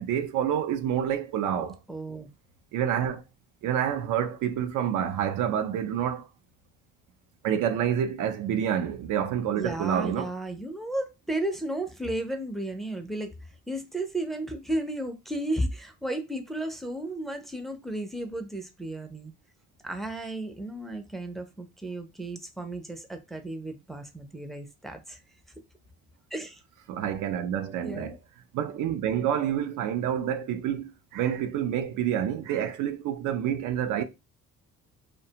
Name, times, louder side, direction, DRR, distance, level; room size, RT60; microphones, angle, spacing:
voice 1, 0.0-1.8 2.7-3.2 3.6-6.3 7.4-10.3 26.9-28.2 28.5-34.0, right 9 dB, 85° right, 0.5 m, -28 dB
voice 2, 1.9-2.3 9.5-13.3 13.7-19.3 19.8-25.2 26.3-26.6 27.8-28.2, right 1 dB, ahead, 0.4 m, -33 dB
2.4 x 2.2 x 2.7 m
cardioid pair, 90°, 30 cm